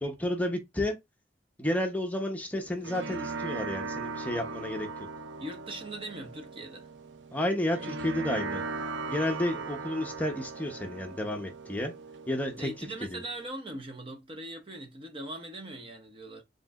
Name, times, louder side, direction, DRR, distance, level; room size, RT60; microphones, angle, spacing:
voice 1, 0.0-0.9 1.6-5.1 7.3-8.6 9.1-11.9 12.3-12.7 13.1-13.2, left 1 dB, 10° left, 0.8 m, -31 dB
sound 1, 2.5-13.5, right 3 dB, 90° right, 0.5 m, -39 dB
voice 2, 5.4-6.9 12.5-16.4, right 1 dB, 30° right, 0.8 m, -40 dB
4.6 x 3.8 x 2.4 m
head